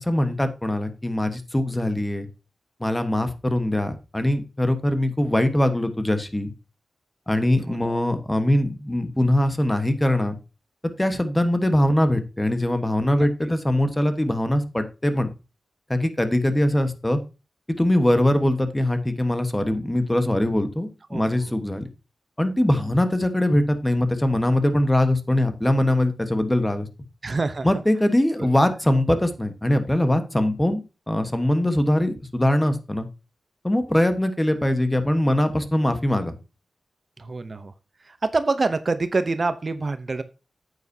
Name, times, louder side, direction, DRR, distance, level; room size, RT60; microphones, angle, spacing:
voice 1, 0.0-2.3 2.8-6.5 7.3-10.4 11.0-15.3 15.9-17.2 17.7-21.9 22.4-26.9 27.6-30.8 31.1-33.1 33.6-36.3, left 1 dB, 15° left, 9 dB, 1.2 m, -22 dB
voice 2, 7.7-8.0 13.2-13.3 21.1-21.4 27.2-27.7 28.6-28.7 37.2-37.7 38.1-40.2, right 3 dB, 50° right, 11 dB, 0.7 m, -26 dB
9.1 x 8.1 x 2.8 m, 0.30 s
cardioid pair, 60°, 0 cm